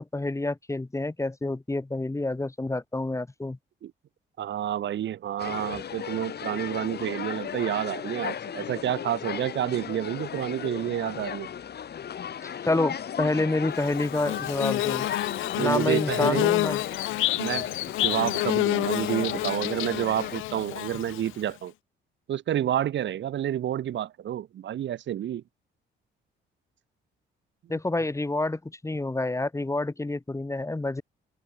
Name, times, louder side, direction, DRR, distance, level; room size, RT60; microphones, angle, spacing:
voice 1, 0.0-3.6 12.4-15.1 15.6-16.8 27.7-31.0, left 2 dB, 15° left, 2.5 m, -28 dB
voice 2, 4.4-11.5 15.5-16.5 17.4-17.7 18.0-21.7 22.3-25.4, right 11 dB, 70° right, 2.1 m, -29 dB
sound 1, 5.4-20.4, left 8 dB, 55° left, 3.4 m, -36 dB
Bird / Buzz, 13.8-21.5, left 18 dB, 85° left, 0.5 m, -28 dB
open air
cardioid pair, 90°, 20 cm